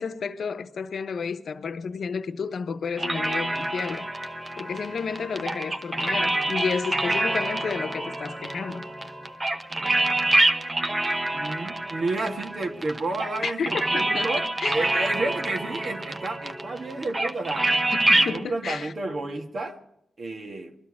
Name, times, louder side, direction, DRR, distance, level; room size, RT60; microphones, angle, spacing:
voice 1, 0.0-4.1 4.6-8.9 13.4-13.7 13.9-14.3 14.6-14.8 18.1-18.9, left 5 dB, 70° left, 0.9 m, -31 dB
sound 1, 3.0-18.4, right 1 dB, 25° right, 1.0 m, -26 dB
Wind instrument woodwind instrument, 3.7-11.2, left 1 dB, 85° right, 5.1 m, -47 dB
voice 2, 11.3-17.7 18.1-19.8 20.2-20.8, right 2 dB, 55° right, 1.8 m, -31 dB
21.0 x 12.5 x 4.9 m
cardioid pair, 75°, 0 cm